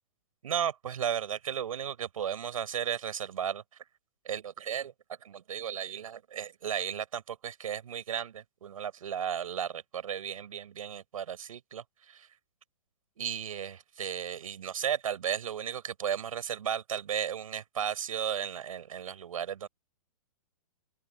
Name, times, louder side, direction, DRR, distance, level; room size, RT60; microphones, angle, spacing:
voice 1, 0.4-3.6 4.2-4.9 5.2-12.3 13.2-19.7, right 9 dB, 65° right, 6.8 m, -34 dB
open air
hypercardioid pair, 170°, 19 cm